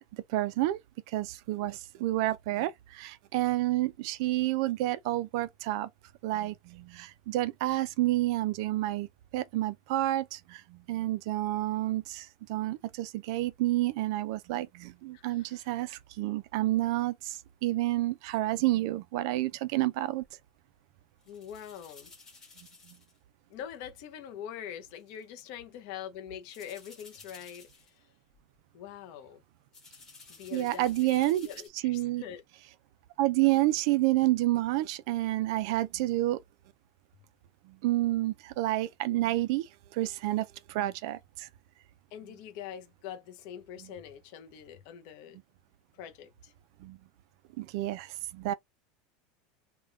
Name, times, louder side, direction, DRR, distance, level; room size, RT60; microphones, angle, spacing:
voice 1, 0.1-0.8 1.1-5.9 6.2-9.1 9.3-20.2 30.5-31.5 31.8-32.2 33.2-36.4 37.7-41.5 46.8-47.0 47.6-48.5, right 16 dB, 55° right, 0.3 m, -29 dB
voice 2, 15.1-15.7 21.3-22.1 23.5-28.1 28.7-29.4 30.3-32.4 42.1-45.4 45.9-46.5, left 9 dB, 50° left, 0.6 m, -44 dB
sound 1, 20.2-20.4 21.2-23.2 23.6-23.7 25.0-25.2 26.5-28.0 28.3-28.6 29.7-31.7, left 4 dB, 15° left, 1.3 m, -54 dB
3.4 x 2.2 x 3.5 m
supercardioid pair, 180°, 3 cm